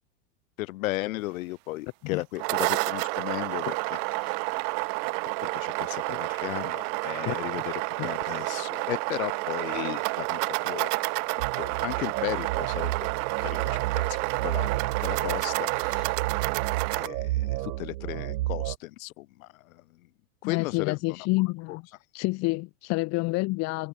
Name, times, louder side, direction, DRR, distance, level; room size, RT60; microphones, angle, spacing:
voice 1, 0.6-4.3 4.9-5.0 5.4-7.7 8.0-11.1 11.6-13.0 13.4-13.8 14.1-14.7 15.0-16.1 16.9-19.8 20.4-21.3 21.7-21.8, left 18 dB, 60° left, 3.3 m, -35 dB
sound 1, 2.2-17.1, right 40 dB or more, 35° right, 0.8 m, -30 dB
sound 2, 11.4-18.8, right 16 dB, 90° right, 0.6 m, -32 dB
voice 2, 20.4-21.9 22.1-23.9, left 24 dB, 35° left, 1.2 m, -28 dB
supercardioid pair, 140°, 47 cm